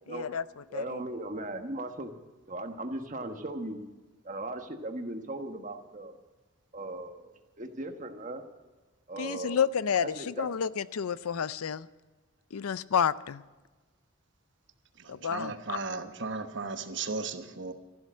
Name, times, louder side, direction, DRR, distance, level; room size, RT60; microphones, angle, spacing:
voice 1, 0.1-0.4 0.7-1.0 9.2-11.9 12.5-13.4 15.1-15.8, left 7 dB, 90° left, 0.5 m, -30 dB
voice 2, 0.7-2.1 2.5-3.8 4.2-6.1 6.7-8.4 9.1-9.7 10.0-10.5, right 2 dB, 35° right, 1.3 m, -38 dB
voice 3, 15.0-17.7, right 4 dB, 55° right, 1.1 m, -36 dB
14.0 x 12.0 x 7.5 m
head